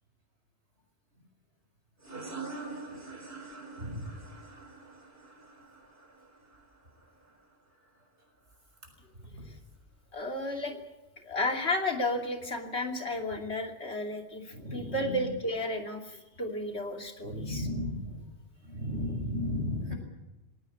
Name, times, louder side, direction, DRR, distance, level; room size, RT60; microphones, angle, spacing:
sound 1, 2.0-7.4, right 3 dB, 60° right, 4.4 m, -45 dB
voice 1, 3.8-4.2 9.3-9.4 14.5-15.3 17.2-18.2 18.6-19.9, left 1 dB, 85° right, 3 dB, 6.5 m, -35 dB
voice 2, 10.1-10.8 11.2-17.7, left 1 dB, 75° left, 3 dB, 3.1 m, -33 dB
20.5 x 18.0 x 8.6 m, 1.0 s
omnidirectional pair, 1.1 m